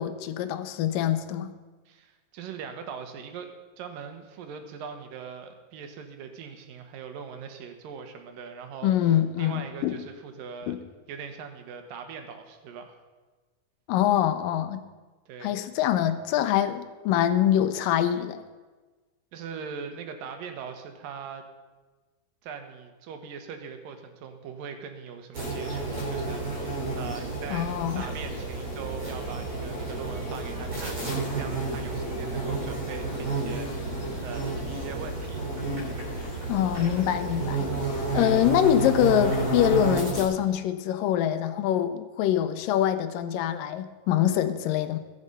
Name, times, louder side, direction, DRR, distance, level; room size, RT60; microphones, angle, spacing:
voice 1, 0.0-1.5 8.8-10.0 10.7-10.8 13.9-14.8 15.4-18.4 27.5-28.1 36.5-37.7 38.1-45.0, left 11 dB, 85° left, 2.5 m, -24 dB
voice 2, 1.9-3.5 3.8-10.8 11.1-13.0 15.3-15.6 19.3-21.4 22.4-27.7 27.9-31.1 31.3-35.5 38.1-38.4, right 6 dB, 85° right, 3.0 m, -41 dB
sound 1, 25.3-40.2, right 2 dB, 40° right, 5.1 m, -31 dB
21.5 x 7.2 x 5.5 m
omnidirectional pair, 3.8 m